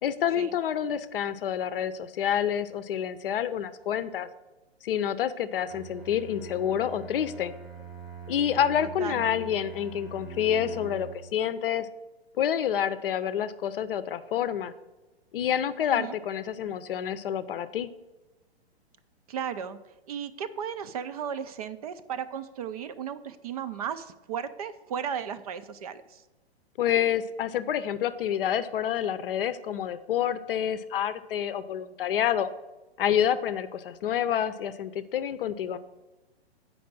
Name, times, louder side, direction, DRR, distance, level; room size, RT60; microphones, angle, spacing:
voice 1, 0.0-4.3 4.8-7.5 8.3-11.9 12.4-14.7 15.3-17.9 26.8-32.5 33.0-35.8, left 9 dB, 55° left, 13 dB, 0.6 m, -28 dB
Bowed string instrument, 5.7-11.4, right 6 dB, ahead, 0.8 m, -43 dB
voice 2, 8.8-9.2 15.9-16.2 19.3-19.8 20.1-26.2, right 8 dB, 35° right, 12 dB, 0.4 m, -35 dB
8.4 x 5.3 x 6.0 m, 1.1 s
hypercardioid pair, 130°, 32 cm